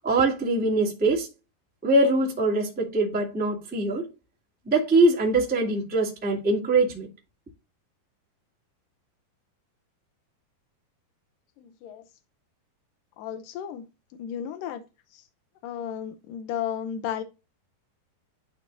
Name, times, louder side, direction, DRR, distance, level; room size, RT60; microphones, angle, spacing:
voice 1, 0.0-1.3 1.8-4.1 4.6-7.1, right 2 dB, 5° right, 1.2 m, -23 dB
voice 2, 11.6-12.0 13.2-13.9 14.2-14.8 15.1-15.3 15.6-17.2, left 9 dB, 75° left, 2.1 m, -33 dB
11.5 x 4.3 x 2.6 m
omnidirectional pair, 4.6 m